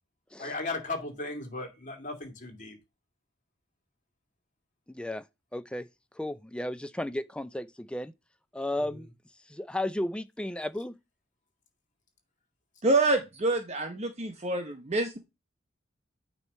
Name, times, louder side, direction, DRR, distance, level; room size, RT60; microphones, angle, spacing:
voice 1, 0.4-2.8 8.8-9.1, left 3 dB, 40° left, 2.3 m, -36 dB
voice 2, 4.9-5.2 5.5-5.9 6.2-8.1 8.5-9.1 9.5-11.0, left 1 dB, 5° left, 0.4 m, -34 dB
voice 3, 12.8-15.2, right 2 dB, 35° right, 0.9 m, -27 dB
8.9 x 3.1 x 5.4 m
head